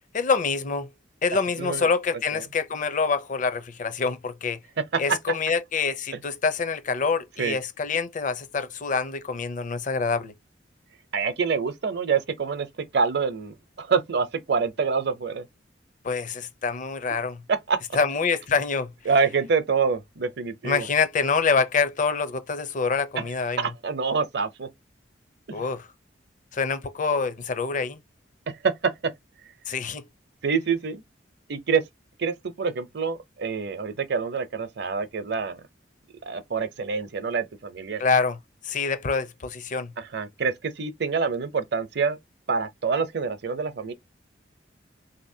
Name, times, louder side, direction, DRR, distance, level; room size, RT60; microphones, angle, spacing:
voice 1, 0.1-0.9 1.2-4.6 5.0-10.3 16.0-17.4 17.9-18.9 20.6-23.6 25.5-25.9 26.5-28.0 29.7-30.0 38.0-38.4 38.6-39.9, left 5 dB, 45° left, 0.6 m, -26 dB
voice 2, 1.6-1.9 2.3-2.4 4.8-5.2 7.4-7.6 11.1-15.5 17.5-17.8 19.1-20.9 23.2-23.3 23.6-24.7 25.5-25.7 28.5-29.1 30.4-31.0 31.5-31.8 32.2-35.6 36.3-38.0 40.0-42.2 42.5-43.9, right 5 dB, 65° right, 0.6 m, -26 dB
3.7 x 2.8 x 2.7 m
head